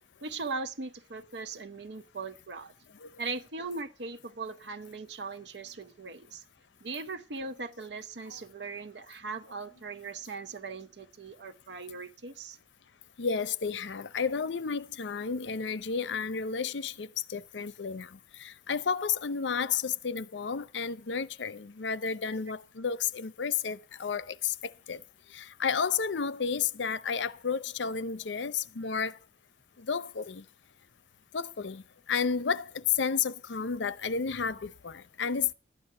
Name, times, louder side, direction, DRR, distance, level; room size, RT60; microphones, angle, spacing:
voice 1, 0.2-2.7 3.2-6.4 6.8-12.6, right 4 dB, 75° right, 0.9 m, -39 dB
voice 2, 13.2-25.0 25.3-29.2 29.8-30.4 31.3-35.5, left 6 dB, 90° left, 0.6 m, -32 dB
12.5 x 9.8 x 5.5 m
head